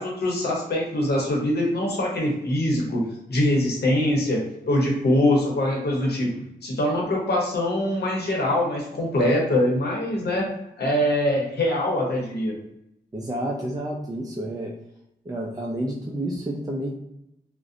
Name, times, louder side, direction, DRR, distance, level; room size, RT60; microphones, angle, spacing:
voice 1, 0.0-6.3 6.6-10.5 10.8-12.6, left 1 dB, 75° left, -2 dB, 0.8 m, -23 dB
voice 2, 13.1-14.7 15.3-16.9, right 1 dB, 20° right, -2 dB, 0.3 m, -30 dB
2.6 x 2.0 x 2.5 m, 0.81 s
wide cardioid pair, 100°, 17 cm